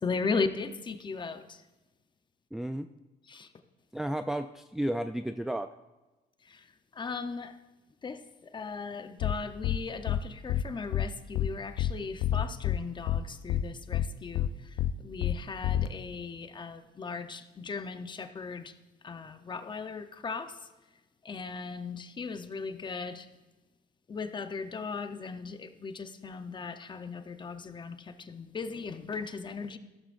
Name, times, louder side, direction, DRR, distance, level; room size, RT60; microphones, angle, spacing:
voice 1, 0.0-1.6 3.3-3.5 6.5-6.6 6.9-7.5 8.0-8.2 8.5-14.8 15.0-18.7 19.0-20.5 21.2-23.3 24.1-29.8, left 4 dB, 25° left, 9 dB, 0.8 m, -37 dB
voice 2, 2.5-2.9 3.9-5.7, right 1 dB, ahead, 7 dB, 0.3 m, -32 dB
sound 1, 9.2-9.3 9.6-9.8 10.1-10.2 10.5-10.6 10.9-11.0 11.3-11.5 11.8-11.9 12.2-12.8 13.1-13.2 13.5-13.6 13.9-14.0 14.3-14.5 14.8-14.9 15.2-15.3 15.6-15.9, left 11 dB, 75° left, 0.6 m, -27 dB
14.5 x 12.5 x 2.6 m, 1.1 s
cardioid pair, 110°, 17 cm